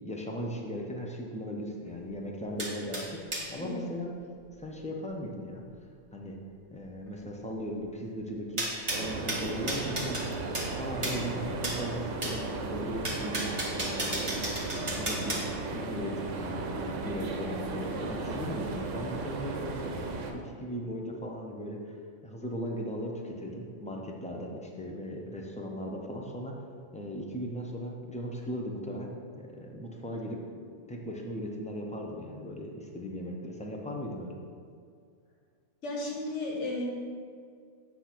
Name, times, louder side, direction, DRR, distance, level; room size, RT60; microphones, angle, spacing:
voice 1, 0.0-3.2 3.5-4.1 4.6-5.6 6.1-6.4 6.7-8.7 8.9-10.4 10.7-15.4 15.7-19.9 20.3-22.0 22.2-26.6 26.9-34.4, equal, 10° left, 0 dB, 0.3 m, -37 dB
sound 1, 2.6-3.5 8.6-10.3 10.5-10.7 11.0-11.2 11.6-11.8 12.2-12.4 13.0-15.4, right 1 dB, 25° right, 1.3 m, -33 dB
sound 2, 8.9-20.3, right 3 dB, 85° right, 1.0 m, -35 dB
voice 2, 35.8-36.8, left 2 dB, 75° left, -2 dB, 1.6 m, -34 dB
8.2 x 2.8 x 5.9 m, 2.2 s
omnidirectional pair, 1.2 m